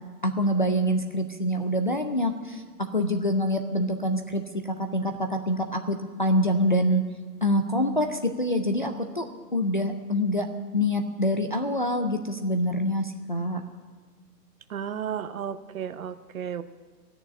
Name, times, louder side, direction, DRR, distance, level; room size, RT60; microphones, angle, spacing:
voice 1, 0.2-7.0 7.4-13.6, equal, 35° left, 4 dB, 0.4 m, -26 dB
voice 2, 14.7-16.6, right 8 dB, 55° right, 12 dB, 0.8 m, -33 dB
14.0 x 6.8 x 9.9 m, 1.4 s
hypercardioid pair, 155°, 49 cm